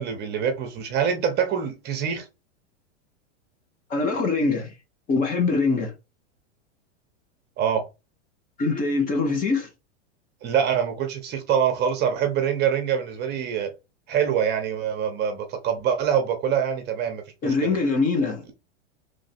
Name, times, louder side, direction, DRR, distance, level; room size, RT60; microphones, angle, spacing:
voice 1, 0.0-2.2 7.6-7.8 10.4-13.7 14.1-17.7, right 8 dB, 30° right, 0.9 m, -25 dB
voice 2, 3.9-4.7 5.1-5.9 8.6-9.7 17.4-18.4, left 4 dB, 25° left, 0.8 m, -23 dB
3.2 x 2.5 x 4.2 m
supercardioid pair, 135°, 35 cm